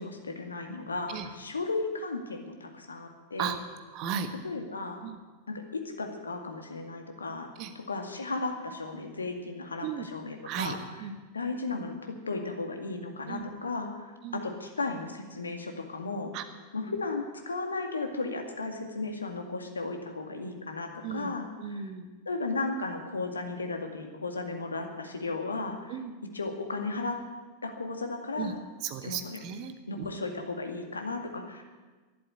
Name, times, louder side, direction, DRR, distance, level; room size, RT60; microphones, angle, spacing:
voice 1, 0.0-3.5 4.4-5.0 5.5-10.8 11.3-16.3 16.7-21.8 22.3-25.9 26.3-27.2 27.6-28.6 29.0-29.4 29.9-31.6, left 3 dB, 75° left, 4 dB, 2.0 m, -35 dB
voice 2, 3.9-4.3 5.0-5.2 7.6-7.7 9.8-10.1 10.4-11.1 13.3-13.4 14.2-14.4 16.3-16.4 16.8-16.9 21.0-21.3 21.6-22.1 25.9-26.1 28.4-28.5 28.8-30.1, right 8 dB, 40° right, 8 dB, 1.4 m, -35 dB
12.0 x 11.0 x 9.5 m, 1.3 s
figure-of-eight pair, 90°, 0 cm